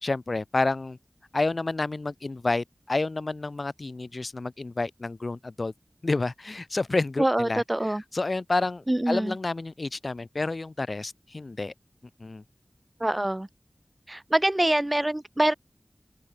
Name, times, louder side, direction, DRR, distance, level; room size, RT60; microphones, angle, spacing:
voice 1, 0.0-1.0 1.3-5.7 6.0-11.7 12.2-12.4, left 3 dB, 60° left, 2.6 m, -29 dB
voice 2, 7.2-8.0 8.9-9.4 13.0-13.5 14.1-15.5, right 1 dB, 25° right, 2.1 m, -25 dB
wide cardioid pair, 45°, 0 cm